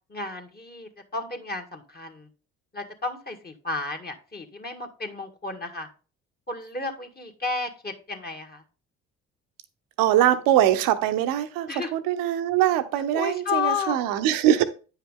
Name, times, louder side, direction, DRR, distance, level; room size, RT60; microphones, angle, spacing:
voice 1, 0.1-2.3 2.7-5.9 6.5-8.6 11.7-11.9 13.1-14.0, left 4 dB, 30° left, 3 dB, 1.8 m, -32 dB
voice 2, 10.0-14.6, right 12 dB, 80° right, 10 dB, 0.9 m, -22 dB
8.9 x 5.6 x 3.7 m, 0.35 s
hypercardioid pair, 55°, 33 cm